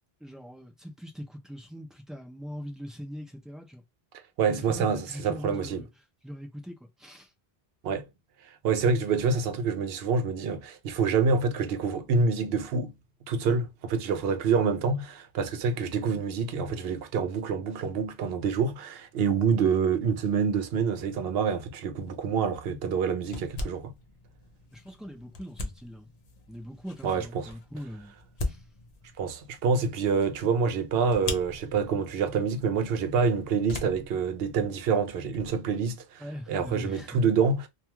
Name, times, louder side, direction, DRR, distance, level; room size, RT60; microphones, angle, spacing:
voice 1, 0.2-3.8 4.5-5.9 6.2-7.3 24.7-26.1 26.5-28.1 28.4-28.6 36.2-37.2, equal, ahead, 0.3 m, -41 dB
voice 2, 4.4-5.8 7.8-8.1 8.6-12.9 13.3-23.9 27.0-27.5 29.2-37.7, right 5 dB, 75° right, 0.8 m, -27 dB
sound 1, 22.0-35.5, left 2 dB, 45° left, 0.6 m, -42 dB
2.4 x 2.3 x 2.9 m
omnidirectional pair, 1.0 m